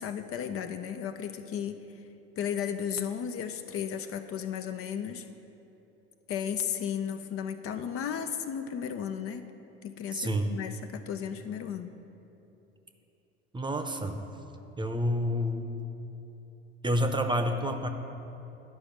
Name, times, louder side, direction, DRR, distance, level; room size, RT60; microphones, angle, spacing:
voice 1, 0.0-1.8 2.4-5.3 6.3-9.4 9.8-11.9, left 8 dB, 45° left, 8 dB, 0.6 m, -34 dB
voice 2, 10.1-10.5 13.5-14.2 14.8-15.7 16.8-17.9, equal, 15° right, 6 dB, 0.8 m, -29 dB
10.5 x 5.0 x 6.5 m, 2.9 s
hypercardioid pair, 60°, 30 cm